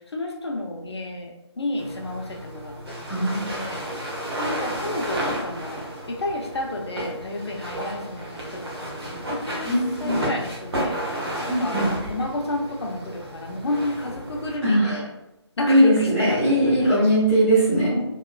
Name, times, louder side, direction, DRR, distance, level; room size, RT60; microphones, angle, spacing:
voice 1, 0.1-3.8 4.4-9.7 10.0-11.0 11.4-15.1 15.6-17.0, left 1 dB, 65° left, 1 dB, 0.6 m, -31 dB
sound 1, 1.8-14.6, right 1 dB, 55° right, 0.9 m, -32 dB
voice 2, 3.1-3.5 9.6-10.3 11.5-11.9 14.6-15.0 15.7-18.0, right 1 dB, 5° left, -13 dB, 0.4 m, -20 dB
3.0 x 2.3 x 2.2 m, 0.90 s
figure-of-eight pair, 160°, 15 cm